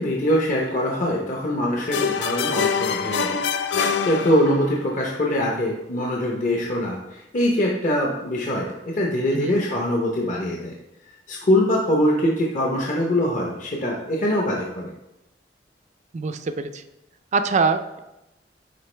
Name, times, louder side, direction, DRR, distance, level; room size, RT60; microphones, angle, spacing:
voice 1, 0.0-3.4 4.0-10.7 11.3-14.9, left 1 dB, 45° left, -2 dB, 0.8 m, -23 dB
sound 1, 1.9-4.9, left 6 dB, 80° left, 0.4 m, -25 dB
voice 2, 16.1-16.8 17.3-18.0, right 4 dB, 40° right, 9 dB, 0.4 m, -24 dB
9.3 x 3.7 x 3.3 m, 0.93 s
head